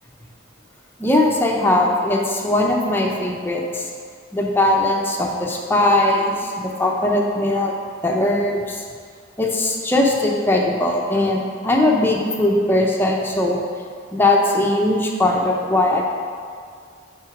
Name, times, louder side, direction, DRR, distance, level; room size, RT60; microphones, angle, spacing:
voice 1, 1.0-3.9 4.3-7.7 8.0-8.8 9.4-13.6 14.1-16.0, left 1 dB, 10° left, -1 dB, 0.7 m, -19 dB
6.2 x 4.3 x 4.9 m, 2.1 s
head